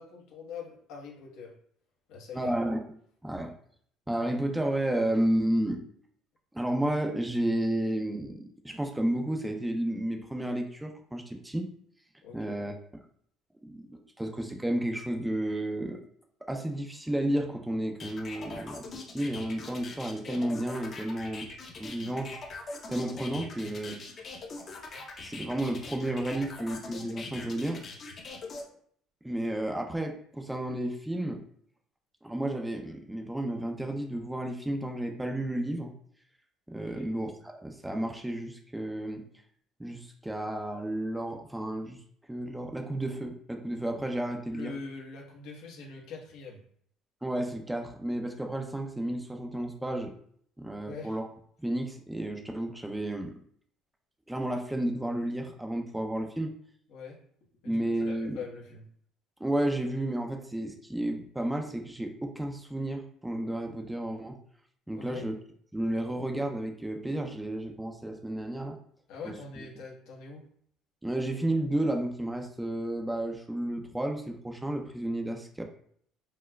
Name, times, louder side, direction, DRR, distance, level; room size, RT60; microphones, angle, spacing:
voice 1, 0.0-1.5 2.1-2.5 12.2-12.6 36.9-37.1 44.5-46.6 50.8-51.2 56.9-57.2 57.6-58.8 64.9-65.3 69.1-70.4, left 5 dB, 80° left, -2 dB, 1.0 m, -43 dB
voice 2, 2.3-2.8 3.2-3.5 4.1-5.8 6.5-11.7 12.3-12.7 13.7-16.0 16.5-18.9 19.1-21.5 21.8-22.3 22.9-24.0 25.2-27.8 29.2-31.4 32.2-35.9 36.7-39.3 39.8-42.0 42.3-44.7 47.2-50.1 50.6-51.3 51.6-53.3 54.3-56.5 57.6-58.4 59.4-64.4 64.9-65.3 65.7-68.8 69.2-69.3 71.0-75.7, right 1 dB, 5° right, 3 dB, 0.4 m, -32 dB
sound 1, 18.0-28.6, left 3 dB, 40° left, 0.7 m, -42 dB
4.2 x 2.2 x 2.2 m, 0.62 s
cardioid pair, 110°, 0 cm